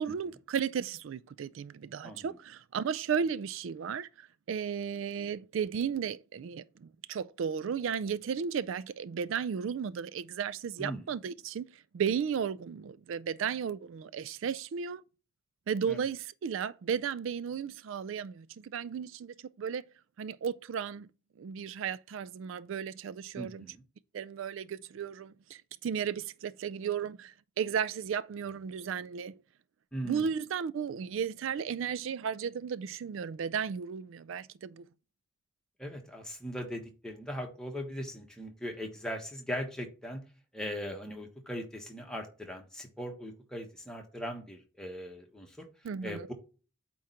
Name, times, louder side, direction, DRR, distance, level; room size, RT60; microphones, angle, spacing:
voice 1, 0.0-15.0 15.7-19.8 20.2-21.1 21.4-23.7 24.1-29.4 30.0-34.9 45.8-46.3, right 7 dB, 75° right, 0.3 m, -34 dB
voice 2, 2.0-2.3 10.8-11.0 15.9-16.0 23.3-23.8 29.9-30.3 35.8-40.2 40.5-45.7 46.0-46.3, equal, 5° left, 1.2 m, -39 dB
8.5 x 3.1 x 5.6 m
head